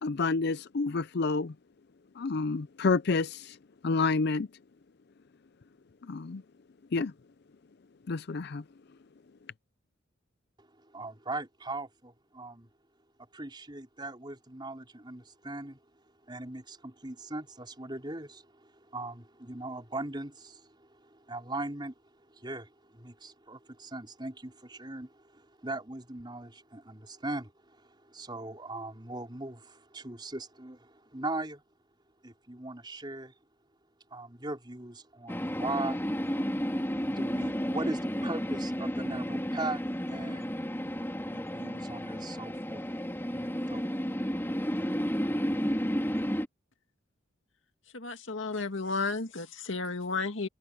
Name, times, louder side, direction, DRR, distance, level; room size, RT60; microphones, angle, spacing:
voice 1, 0.0-1.5 2.2-3.6 3.8-4.5 6.1-6.4 6.9-7.1 8.1-8.6, left 4 dB, 55° left, 0.5 m, -29 dB
voice 2, 10.6-12.7 13.3-15.8 16.3-21.9 22.3-31.6 32.2-33.3 34.1-36.0 37.0-39.8 40.1-40.5 41.2-42.8 43.3-44.1, right 2 dB, 25° right, 5.0 m, -40 dB
sound 1, 35.3-46.5, equal, 10° left, 2.9 m, -32 dB
voice 3, 47.9-50.5, left 3 dB, 70° left, 2.1 m, -33 dB
head